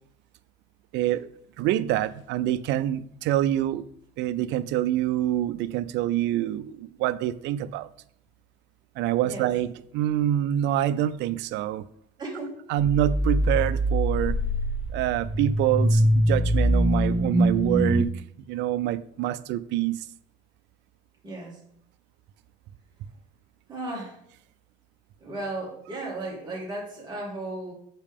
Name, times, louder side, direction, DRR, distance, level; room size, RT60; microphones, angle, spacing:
voice 1, 0.9-1.3 1.6-3.8 4.2-7.9 9.0-11.9 12.7-14.4 14.9-18.1 18.5-20.0, right 12 dB, 70° right, 0.5 m, -26 dB
voice 2, 12.2-12.6 21.2-21.6 23.7-24.2 25.2-27.7, right 2 dB, 20° right, 2.3 m, -35 dB
sound 1, 12.8-18.0, equal, 5° right, 0.6 m, -23 dB
7.5 x 5.2 x 3.5 m
cardioid pair, 135°, 19 cm